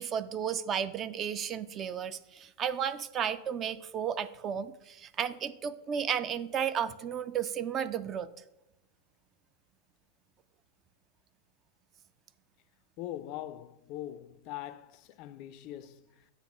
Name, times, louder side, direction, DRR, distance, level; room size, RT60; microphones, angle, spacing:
voice 1, 0.0-8.3, right 8 dB, 30° right, 0.4 m, -33 dB
voice 2, 13.0-16.3, left 13 dB, 40° left, 0.4 m, -42 dB
7.7 x 3.4 x 6.0 m
figure-of-eight pair, 90°, 0 cm